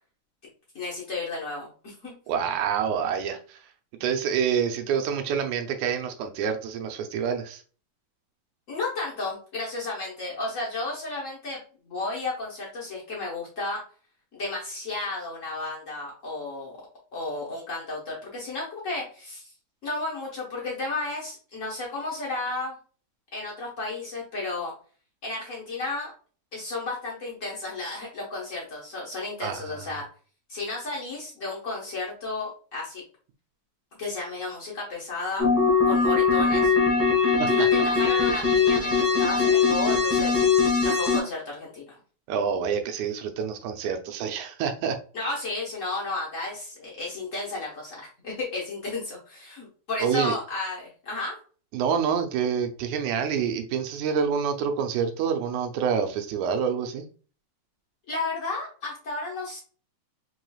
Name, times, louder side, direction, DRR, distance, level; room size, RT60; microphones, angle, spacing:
voice 1, 0.7-2.2 8.7-11.6 11.8-13.8 14.3-16.8 17.1-19.5 19.8-22.7 23.3-24.7 25.2-26.1 26.5-30.1 30.5-33.0 34.0-35.5 35.8-36.7 37.5-40.4 40.8-42.0 45.1-51.4 58.1-59.6, left 2 dB, 80° left, -4 dB, 0.7 m, -33 dB
voice 2, 2.3-3.6 4.0-7.6 29.4-30.0 37.4-37.7 42.3-45.0 50.0-50.4 51.7-57.1, right 7 dB, 85° right, 6 dB, 2.1 m, -27 dB
sound 1, 35.4-41.2, left 5 dB, 15° left, 0.5 m, -21 dB
5.2 x 3.1 x 2.3 m, 0.40 s
omnidirectional pair, 3.4 m